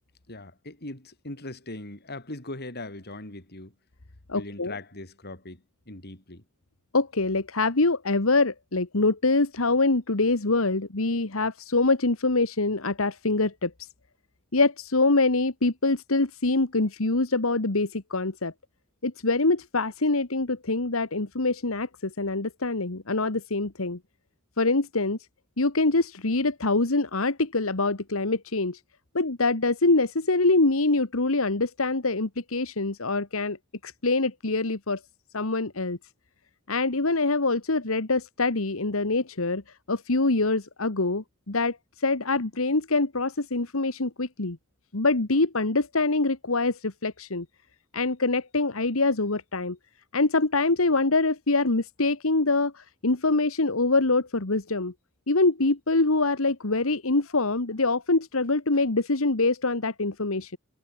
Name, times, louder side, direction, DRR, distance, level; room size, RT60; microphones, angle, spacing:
voice 1, 0.3-3.7 4.3-6.4, left 2 dB, 50° left, 5.6 m, -40 dB
voice 2, 4.3-4.8 6.9-13.7 14.5-18.5 19.0-24.0 24.6-25.2 25.6-28.8 29.1-33.6 33.8-35.0 35.3-36.0 36.7-39.6 39.9-44.6 44.9-47.5 47.9-49.8 50.1-54.9 55.3-60.6, left 3 dB, 85° left, 1.7 m, -24 dB
head